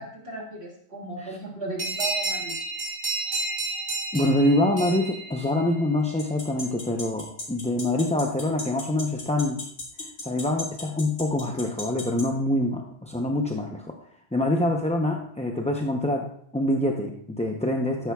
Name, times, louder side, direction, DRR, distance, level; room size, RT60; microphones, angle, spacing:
voice 1, 0.0-2.6, right 2 dB, 65° right, -1 dB, 2.8 m, -35 dB
sound 1, 1.8-6.0, right 2 dB, 45° right, 3.2 m, -31 dB
voice 2, 4.1-9.6 10.2-13.9 14.3-16.3 16.5-18.1, left 1 dB, 10° left, 1 dB, 0.5 m, -25 dB
sound 2, 6.2-12.2, left 2 dB, 90° left, 2.4 m, -35 dB
12.5 x 10.5 x 2.3 m, 0.64 s
omnidirectional pair, 1.2 m